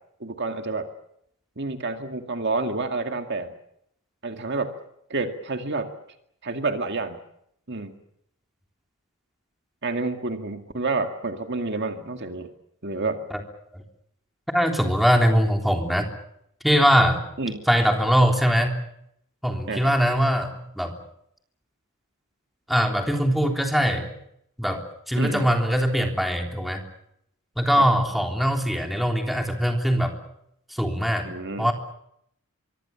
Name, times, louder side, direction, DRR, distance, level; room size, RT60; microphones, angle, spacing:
voice 1, 0.2-0.9 1.6-3.5 4.2-4.7 5.1-5.9 6.4-7.2 7.7-8.0 9.8-12.5 12.8-13.2 17.4-17.6 19.7-19.9 25.2-25.5 27.8-27.9 31.2-31.7, right 3 dB, 50° right, 6 dB, 2.1 m, -29 dB
voice 2, 14.5-16.1 16.6-17.2 17.7-18.7 19.4-21.0 22.7-24.1 24.6-26.8 27.6-30.1 30.7-31.3 31.6-31.7, equal, ahead, 3 dB, 3.4 m, -22 dB
25.0 x 24.5 x 7.1 m, 0.74 s
head